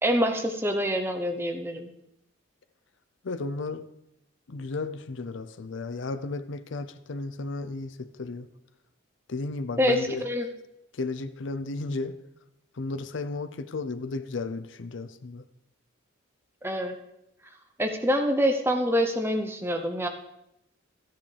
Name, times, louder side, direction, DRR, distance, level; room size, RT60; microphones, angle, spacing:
voice 1, 0.0-1.9 9.8-10.5 16.6-17.0 17.8-20.1, equal, 10° right, 5 dB, 0.7 m, -26 dB
voice 2, 3.2-3.9 4.5-8.5 9.3-10.3 10.9-12.2 12.8-15.4, left 3 dB, 70° left, 12 dB, 0.5 m, -34 dB
13.5 x 10.0 x 3.3 m, 0.83 s
head